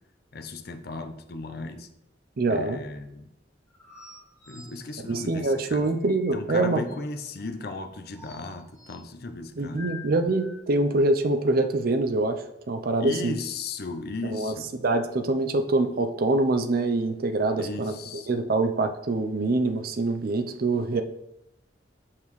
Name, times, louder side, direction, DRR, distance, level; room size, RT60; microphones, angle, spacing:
voice 1, 0.3-1.9 2.5-3.3 4.5-5.8 6.3-9.8 13.0-14.8 17.6-18.3, left 3 dB, 55° left, 6 dB, 0.6 m, -36 dB
voice 2, 2.4-2.8 5.1-6.8 9.6-13.3 14.2-14.5 14.8-21.0, right 2 dB, 50° right, 7 dB, 0.5 m, -25 dB
sound 1, 3.7-7.0 8.1-9.1 9.8-10.6, left 4 dB, 15° left, 1.7 m, -47 dB
6.7 x 5.7 x 3.2 m, 0.83 s
head